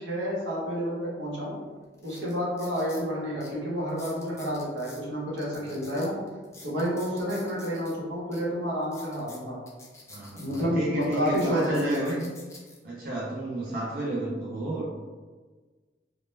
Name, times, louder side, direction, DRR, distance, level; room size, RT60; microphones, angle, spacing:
voice 1, 0.0-1.5 2.0-6.2 6.6-9.6 10.4-12.0, equal, 80° right, -6 dB, 0.8 m, -29 dB
sound 1, 1.3-1.4 1.9-3.1 3.4-3.5 3.9-5.0 5.4-7.9 8.3-8.4 8.8-10.6 11.0-12.8 13.4-13.7, left 2 dB, 15° left, 0.4 m, -49 dB
voice 2, 10.1-12.2 12.8-14.9, right 2 dB, 55° right, -6 dB, 0.4 m, -31 dB
2.1 x 2.1 x 3.0 m, 1.4 s
head